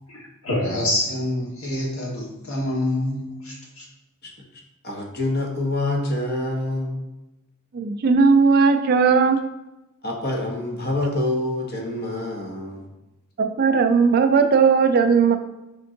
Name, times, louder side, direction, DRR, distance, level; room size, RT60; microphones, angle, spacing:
voice 1, 0.1-3.8, left 1 dB, 75° left, -3 dB, 1.4 m, -26 dB
voice 2, 4.8-7.0 10.0-12.9, left 1 dB, 45° left, 1 dB, 0.7 m, -26 dB
voice 3, 7.7-9.4 13.4-15.4, right 5 dB, 45° right, 7 dB, 0.3 m, -17 dB
5.1 x 3.6 x 2.6 m, 0.97 s
head